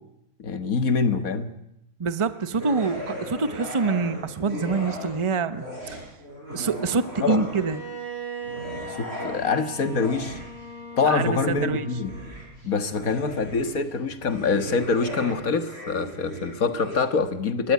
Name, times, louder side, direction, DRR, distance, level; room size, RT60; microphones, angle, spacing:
voice 1, 0.4-1.5 7.2-7.5 9.0-10.4 11.0-12.1 12.6-17.7, left 4 dB, 80° left, 10 dB, 2.1 m, -25 dB
voice 2, 2.0-5.6 6.5-7.8 11.0-11.9, right 4 dB, 25° right, 13 dB, 0.9 m, -26 dB
sound 1, 2.5-5.2 5.5-7.9 8.4-17.0, equal, 45° right, 8.4 m, -37 dB
Bowed string instrument, 7.5-12.5, right 3 dB, 75° right, 8.2 m, -39 dB
23.0 x 19.0 x 9.6 m, 0.82 s
omnidirectional pair, 1.5 m